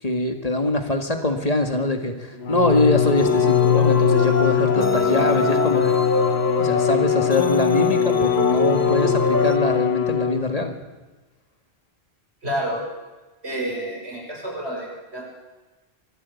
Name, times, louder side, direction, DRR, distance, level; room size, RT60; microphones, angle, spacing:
voice 1, 0.0-6.0 6.6-10.8, left 2 dB, 35° left, 5 dB, 2.0 m, -23 dB
Bowed string instrument, 2.4-10.7, left 8 dB, 80° left, 1.4 m, -21 dB
sound 1, 3.2-9.6, left 1 dB, 15° left, 1.4 m, -25 dB
voice 2, 12.4-12.8 13.4-15.3, right 1 dB, 90° right, -1 dB, 6.6 m, -29 dB
24.0 x 13.5 x 8.4 m, 1.2 s
omnidirectional pair, 1.1 m